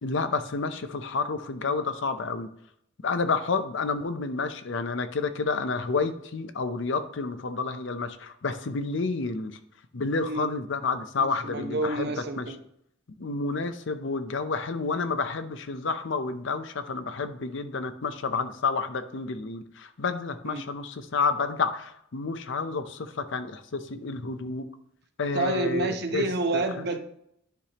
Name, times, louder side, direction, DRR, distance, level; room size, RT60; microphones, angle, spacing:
voice 1, 0.0-2.5 3.0-9.6 9.9-12.1 12.4-12.5 13.2-24.7 25.2-26.3 26.5-26.6, left 4 dB, 65° left, 10 dB, 0.6 m, -30 dB
voice 2, 10.2-10.5 11.2-12.6 20.4-20.6 25.3-27.0, right 2 dB, 55° right, 6 dB, 0.8 m, -29 dB
10.0 x 5.0 x 2.9 m, 0.72 s
head